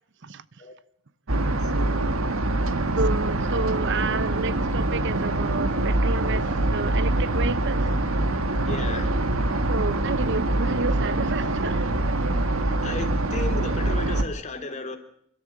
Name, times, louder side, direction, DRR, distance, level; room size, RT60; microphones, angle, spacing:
sound 1, 1.3-14.2, right 2 dB, 80° right, 1.6 m, -24 dB
voice 1, 1.7-2.1 8.7-9.2 12.8-15.0, left 2 dB, 35° left, 3.2 m, -34 dB
voice 2, 3.0-6.4 6.7-7.9 9.7-11.9, right 3 dB, 60° right, 0.9 m, -30 dB
29.5 x 13.0 x 7.5 m
head